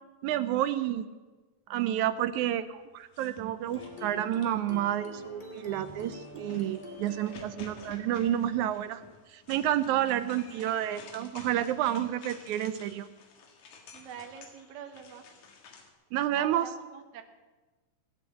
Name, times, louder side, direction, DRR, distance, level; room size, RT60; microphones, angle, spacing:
voice 1, 0.2-1.1 1.7-9.0 9.3-13.1 16.1-16.7, right 12 dB, 80° right, 12 dB, 1.9 m, -30 dB
sound 1, 3.0-4.7 5.5-15.9, left 5 dB, 70° left, 3.0 m, -51 dB
sound 2, 3.6-9.2, left 2 dB, 20° left, 2.0 m, -47 dB
voice 2, 10.2-10.8 13.9-15.2 16.4-17.2, right 7 dB, 55° right, 5 dB, 1.3 m, -46 dB
17.0 x 8.3 x 8.3 m, 1.2 s
omnidirectional pair, 3.5 m